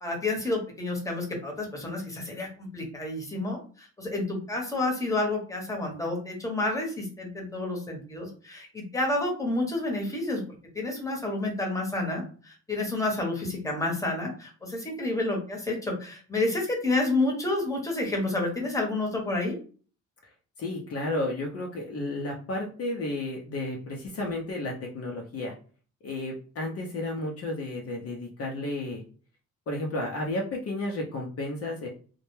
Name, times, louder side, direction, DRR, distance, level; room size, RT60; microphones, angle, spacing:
voice 1, 0.0-10.4 10.7-19.6, left 2 dB, 10° left, 0 dB, 0.9 m, -29 dB
voice 2, 20.6-25.5 26.0-29.0 29.7-31.9, left 2 dB, 50° left, 0 dB, 0.6 m, -32 dB
2.1 x 2.1 x 3.0 m, 0.40 s
cardioid pair, 90°, 30 cm